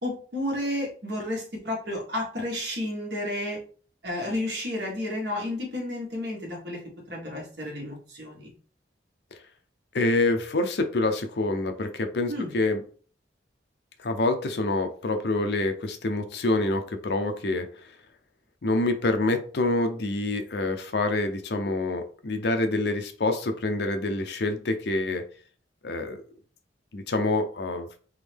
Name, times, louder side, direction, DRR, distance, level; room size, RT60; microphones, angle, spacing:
voice 1, 0.0-3.6 4.0-6.8 7.1-8.5 12.3-12.5, left 1 dB, 65° right, -1 dB, 1.7 m, -31 dB
voice 2, 9.9-12.8 14.0-17.7 18.6-25.2 25.8-26.2 26.9-27.9, left 2 dB, 65° left, 7 dB, 0.6 m, -26 dB
3.7 x 3.0 x 3.4 m, 0.42 s
head